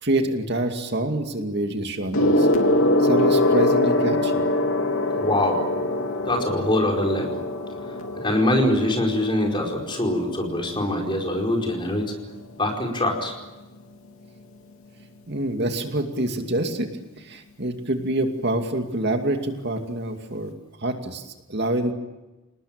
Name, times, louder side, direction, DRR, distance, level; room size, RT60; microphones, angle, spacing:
voice 1, 0.0-2.5 3.0-4.3 15.3-16.9 17.2-20.5 20.8-21.9, right 1 dB, 55° right, 5 dB, 2.5 m, -26 dB
Gong, 2.1-11.9 12.8-13.1, left 1 dB, 85° left, 3.0 m, -24 dB
voice 2, 5.2-5.6 6.3-7.4 8.2-12.1 12.6-13.3, left 1 dB, 25° left, 1 dB, 4.8 m, -23 dB
29.0 x 19.5 x 8.9 m, 1.1 s
head